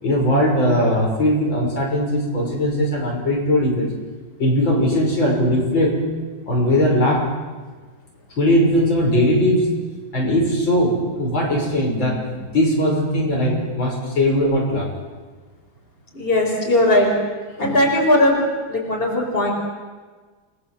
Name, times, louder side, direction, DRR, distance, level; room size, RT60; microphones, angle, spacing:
voice 1, 0.0-3.9 4.4-6.0 6.5-7.3 8.4-9.7 10.1-14.9 17.6-17.8, equal, 70° left, -2 dB, 6.6 m, -19 dB
voice 2, 16.1-17.1 17.6-18.4 18.7-19.5, left 1 dB, 25° left, 0 dB, 5.3 m, -18 dB
29.5 x 21.0 x 7.5 m, 1.4 s
omnidirectional pair, 2.2 m